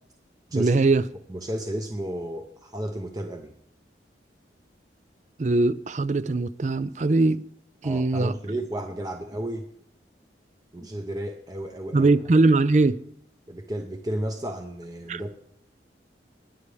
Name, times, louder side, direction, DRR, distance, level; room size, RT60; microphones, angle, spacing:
voice 1, 0.5-1.0 5.4-7.4 7.8-8.3 11.9-13.0 15.1-15.2, right 3 dB, 40° right, 0.4 m, -21 dB
voice 2, 1.3-3.5 7.8-9.7 10.7-12.1 13.5-15.3, right 1 dB, 20° right, 0.8 m, -32 dB
20.5 x 8.3 x 3.4 m
head